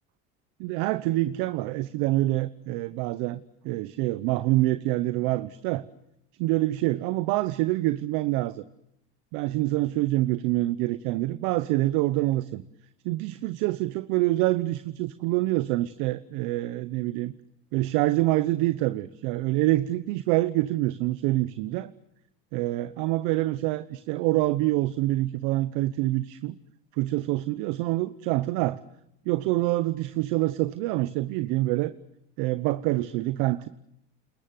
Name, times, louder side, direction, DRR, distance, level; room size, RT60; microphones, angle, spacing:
voice 1, 0.6-3.4 3.6-5.8 6.4-8.6 9.3-12.6 13.0-17.3 17.7-21.9 22.5-26.6 27.0-28.8 29.2-31.9 32.4-33.7, right 17 dB, 75° right, 14 dB, 1.1 m, -26 dB
29.5 x 21.0 x 7.8 m, 0.78 s
supercardioid pair, 95°, 34 cm